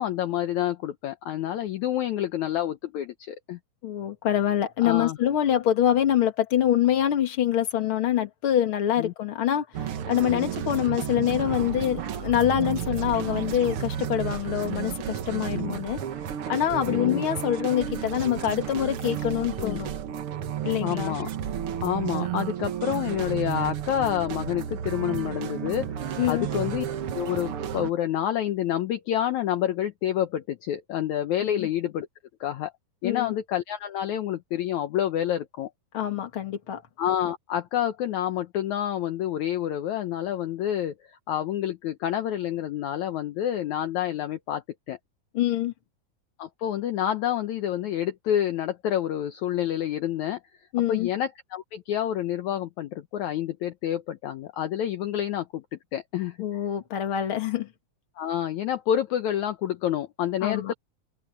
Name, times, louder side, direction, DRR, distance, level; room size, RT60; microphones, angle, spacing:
voice 1, 0.0-3.6 4.8-5.2 9.0-9.1 10.3-10.5 15.5-15.8 16.9-17.3 19.6-19.8 20.8-21.3 21.8-26.9 27.1-32.1 32.4-32.7 33.0-35.7 37.0-45.0 46.4-50.4 50.9-56.4 58.2-60.7, left 11 dB, 70° left, 1.9 m, -28 dB
voice 2, 3.8-16.0 16.5-19.9 20.6-21.2 26.2-26.5 31.4-31.7 33.0-33.3 35.9-36.8 45.3-45.7 50.7-51.1 56.4-57.7 60.4-60.7, left 11 dB, 45° left, 2.3 m, -25 dB
sound 1, 9.7-27.9, right 9 dB, 70° right, 1.3 m, -32 dB
omnidirectional pair, 4.2 m